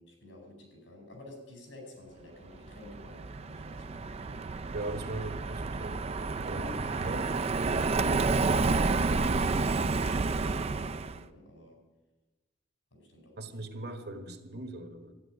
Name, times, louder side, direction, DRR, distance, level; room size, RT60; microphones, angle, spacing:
voice 1, 0.0-4.1 7.9-11.8 12.9-13.5, left 1 dB, 85° left, 2 dB, 5.1 m, -50 dB
Car passing by, 2.7-11.2, right 3 dB, 35° right, 0.4 m, -30 dB
voice 2, 4.7-6.0 6.5-7.3 13.4-15.1, right 1 dB, 60° right, 7 dB, 1.5 m, -39 dB
13.0 x 9.1 x 9.9 m, 1.2 s
head